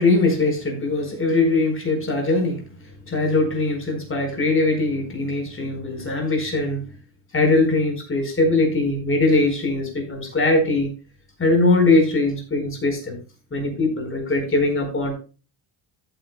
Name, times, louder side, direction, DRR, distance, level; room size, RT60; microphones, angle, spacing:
voice 1, 0.0-2.6 3.1-6.9 7.3-10.9 11.4-13.1 13.5-15.1, left 2 dB, 25° left, 3 dB, 4.6 m, -21 dB
14.0 x 9.0 x 2.2 m, 0.34 s
cardioid pair, 150°, 46 cm